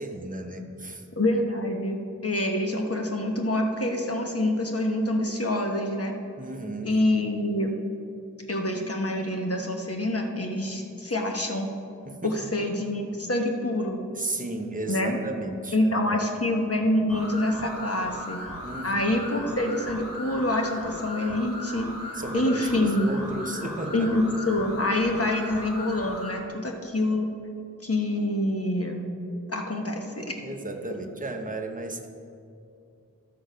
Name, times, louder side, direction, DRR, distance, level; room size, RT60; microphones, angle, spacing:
voice 1, 0.0-1.0 6.4-7.0 12.1-12.3 14.1-16.3 18.6-19.0 22.1-24.1 30.4-32.1, right 2 dB, 25° right, 3 dB, 0.8 m, -34 dB
voice 2, 1.2-6.1 6.8-7.8 8.5-11.7 12.2-14.0 14.9-15.2 15.7-18.4 18.8-21.9 22.3-23.1 23.9-27.3 27.8-29.0 29.5-30.4, left 1 dB, 45° left, 2 dB, 1.2 m, -26 dB
sound 1, 17.1-26.4, equal, 80° left, 2.0 m, -38 dB
12.5 x 6.3 x 5.0 m, 2.6 s
wide cardioid pair, 50°, 33 cm